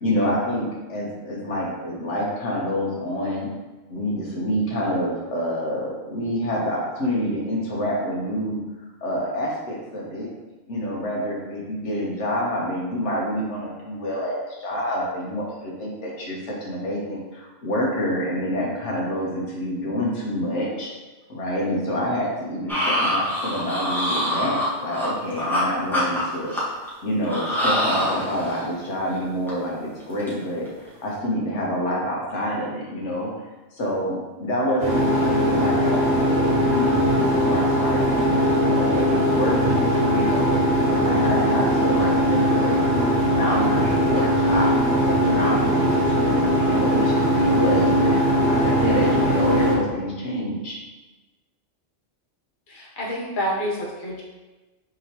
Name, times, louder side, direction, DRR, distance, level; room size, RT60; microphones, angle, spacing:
voice 1, 0.0-3.5 3.9-8.6 9.0-10.3 10.7-20.9 21.3-26.6 27.0-30.7 31.0-33.3 33.7-38.2 38.7-40.6 40.9-50.8, equal, 80° left, -3 dB, 1.3 m, -27 dB
sound 1, 22.7-25.6 25.9-26.9 27.2-28.7 29.1-29.2 29.5-29.7 30.0-30.3 30.7-30.9, equal, ahead, 1.0 m, -25 dB
sound 2, 34.8-49.8, equal, 60° right, 1.4 m, -20 dB
voice 2, 52.7-54.2, equal, 50° left, -3 dB, 1.0 m, -28 dB
4.8 x 3.8 x 2.9 m, 1.2 s
omnidirectional pair, 1.2 m